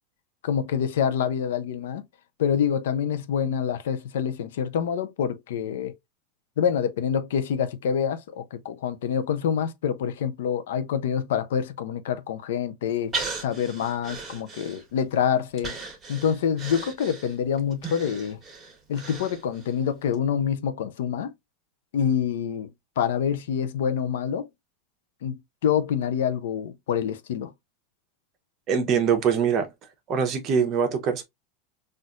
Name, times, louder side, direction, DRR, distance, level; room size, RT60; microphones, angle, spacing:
voice 1, 0.4-2.0 2.4-5.9 6.6-13.1 13.4-15.8 16.1-18.4 18.9-21.3 21.9-22.7 23.0-24.5 25.2-27.5, left 8 dB, 85° left, 0.6 m, -26 dB
Breathing, 13.1-15.1 15.6-19.8 20.1-20.2, right 4 dB, 20° right, 1.3 m, -37 dB
voice 2, 28.7-29.7 30.1-31.2, right 7 dB, 35° right, 0.8 m, -23 dB
4.2 x 2.5 x 2.4 m
supercardioid pair, 140°, 0 cm